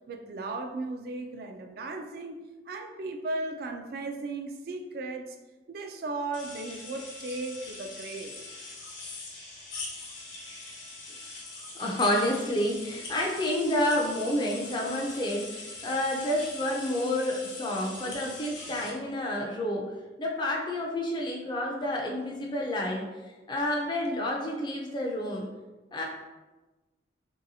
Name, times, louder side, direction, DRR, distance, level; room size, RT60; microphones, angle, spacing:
voice 1, 0.1-2.4 2.7-5.3 5.7-8.3, right 2 dB, 50° right, 5 dB, 0.3 m, -36 dB
sound 1, 6.3-18.9, left 3 dB, 85° left, 0.9 m, -42 dB
voice 2, 11.8-19.9 20.2-23.1 23.5-25.5 25.9-26.0, left 1 dB, 25° left, -1 dB, 0.4 m, -29 dB
3.0 x 2.7 x 2.6 m, 1.2 s
head